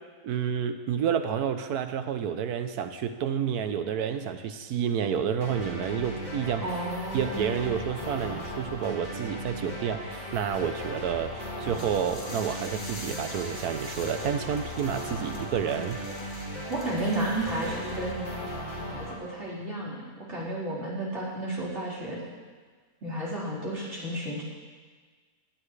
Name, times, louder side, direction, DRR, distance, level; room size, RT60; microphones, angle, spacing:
voice 1, 0.2-6.6 7.1-16.0, right 8 dB, 85° right, 8 dB, 1.3 m, -30 dB
sound 1, 5.4-19.1, equal, 60° left, 4.6 m, -37 dB
voice 2, 6.6-7.8 16.7-18.3 18.7-22.2 23.0-24.4, right 1 dB, 45° right, -9 dB, 4.6 m, -32 dB
sound 2, 11.7-18.2, left 1 dB, 40° left, 3.0 m, -45 dB
20.5 x 12.0 x 3.3 m, 1.5 s
omnidirectional pair, 1.6 m